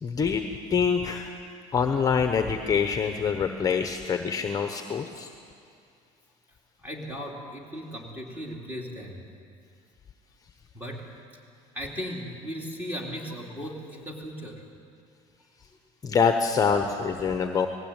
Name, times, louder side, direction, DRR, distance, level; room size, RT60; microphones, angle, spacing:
voice 1, 0.0-0.4 0.7-1.3 1.7-5.3 16.0-17.7, left 6 dB, 25° left, 6 dB, 1.0 m, -25 dB
voice 2, 6.8-9.3 10.7-11.1 11.7-14.6, equal, 10° right, 0 dB, 3.2 m, -37 dB
19.5 x 15.5 x 8.9 m, 2.4 s
cardioid pair, 130°, 15 cm